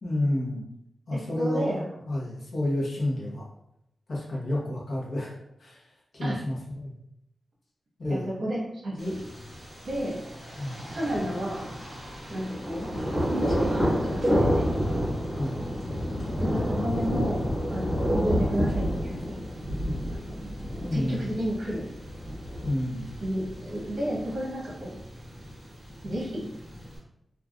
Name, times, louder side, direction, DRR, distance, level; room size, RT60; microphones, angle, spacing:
voice 1, 0.0-0.6 1.1-3.5 4.1-6.6 6.8-7.0 8.0-8.3 10.5-10.8 15.3-15.7 20.8-21.4 22.6-23.1, left 1 dB, 50° left, -4 dB, 0.9 m, -30 dB
voice 2, 1.1-1.8 6.2-6.4 8.1-9.1 9.8-10.2 10.9-11.7 12.3-12.9 13.3-14.8 16.4-17.4 17.7-19.4 20.2-20.5 20.9-21.9 23.2-25.0 26.0-26.4, equal, 55° right, -4 dB, 1.1 m, -32 dB
Thunder, 9.0-27.0, equal, 10° left, 1.5 m, -30 dB
3.5 x 2.4 x 2.4 m, 0.79 s
wide cardioid pair, 160°, 0 cm